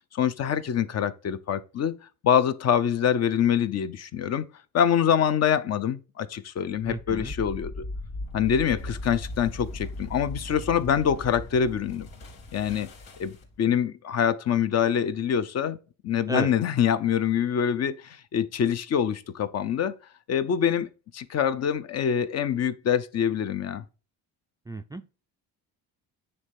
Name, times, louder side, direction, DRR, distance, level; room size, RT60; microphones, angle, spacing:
voice 1, 0.1-1.9 2.2-4.5 4.7-7.8 8.3-12.1 12.5-12.9 13.2-13.3 13.6-15.8 16.0-19.9 20.3-23.8, left 8 dB, 45° left, 0.7 m, -25 dB
sound 1, 6.8-13.6, left 2 dB, 80° left, 3.3 m, -38 dB
voice 2, 6.9-7.3 16.3-16.5 24.7-25.1, right 2 dB, 10° right, 0.3 m, -33 dB
9.7 x 3.3 x 5.3 m
cardioid pair, 145°, 36 cm